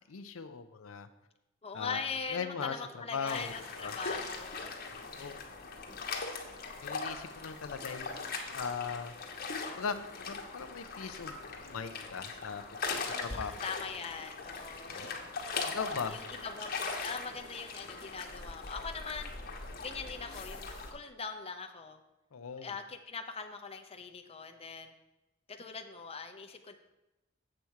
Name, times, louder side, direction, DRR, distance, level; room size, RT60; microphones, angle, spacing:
voice 1, 0.1-1.1 1.7-2.0 2.3-2.8 3.1-3.9 4.9-5.4 6.8-9.1 9.7-12.6 13.0-13.5 14.9-15.1 15.7-16.2 22.3-22.7, left 6 dB, 80° left, 9 dB, 0.6 m, -39 dB
voice 2, 1.6-4.8 13.1-15.3 16.1-19.3 19.8-22.0 22.6-24.9 25.5-26.8, left 5 dB, 30° left, 4 dB, 0.7 m, -41 dB
sound 1, 3.3-20.9, left 4 dB, 45° left, 1.2 m, -40 dB
7.7 x 7.1 x 4.5 m, 0.99 s
head